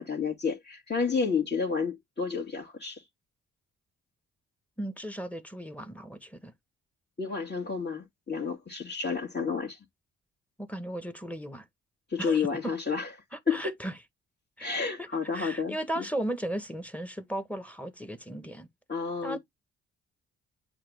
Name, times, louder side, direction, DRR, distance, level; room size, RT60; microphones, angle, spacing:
voice 1, 0.0-3.0 7.2-9.8 12.1-13.1 13.5-13.7 14.6-16.1 18.9-19.4, left 5 dB, 25° left, 2.6 m, -30 dB
voice 2, 4.8-6.5 10.6-11.7 12.2-12.4 13.3-13.9 14.6-15.1 15.3-18.7 19.2-19.4, right 1 dB, 5° left, 1.7 m, -36 dB
8.4 x 2.8 x 5.0 m
hypercardioid pair, 40°, 37 cm